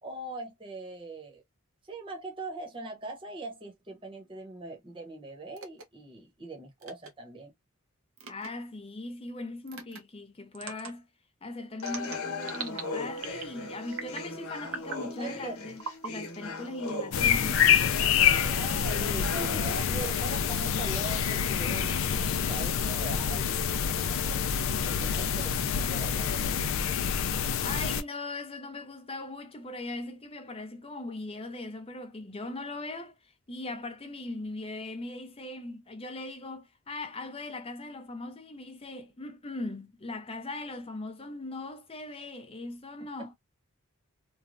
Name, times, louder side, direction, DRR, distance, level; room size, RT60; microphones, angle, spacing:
voice 1, 0.0-1.4 1.9-7.5 15.2-15.5 18.5-23.5 23.9-24.4 24.9-26.4 43.0-43.1, right 2 dB, 25° right, 0.9 m, -41 dB
sound 1, 5.6-5.8 6.8-7.1 8.2-8.5 9.7-10.0 10.6-10.9 11.8-12.8 13.2-13.6 13.9-14.3 14.7-15.0 15.8-16.1 16.9-17.8, right 5 dB, 70° right, 0.8 m, -40 dB
voice 2, 8.3-11.1 11.4-17.6 27.6-43.3, left 2 dB, 25° left, 0.6 m, -39 dB
sound 2, 11.8-19.8, left 3 dB, 90° left, 1.0 m, -38 dB
sound 3, 17.1-28.0, left 7 dB, 65° left, 0.4 m, -27 dB
3.1 x 2.2 x 2.5 m
head